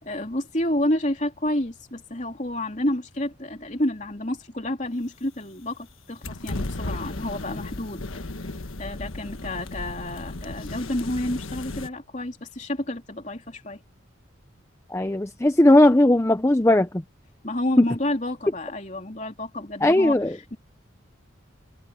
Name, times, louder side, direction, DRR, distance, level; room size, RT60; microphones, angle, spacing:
voice 1, 0.0-8.2 8.8-13.8 17.4-20.2 20.5-20.6, left 1 dB, 35° left, 3.2 m, -29 dB
sound 1, 6.2-11.9, left 2 dB, 85° left, 1.4 m, -34 dB
voice 2, 14.9-17.0 19.8-20.3, left 1 dB, 15° left, 0.5 m, -18 dB
head